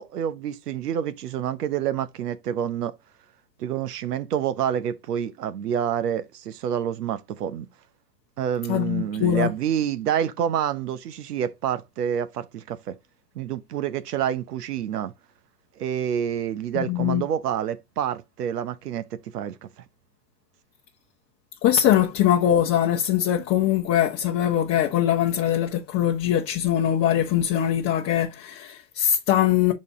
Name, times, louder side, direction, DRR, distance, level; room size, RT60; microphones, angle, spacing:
voice 1, 0.0-2.9 3.6-7.7 8.4-13.0 13.3-15.1 15.8-19.7, right 9 dB, 65° right, 1.0 m, -28 dB
voice 2, 8.7-9.5 16.7-17.2 21.6-29.7, left 11 dB, 30° left, 1.0 m, -22 dB
6.5 x 4.2 x 3.7 m
hypercardioid pair, 105°, 50 cm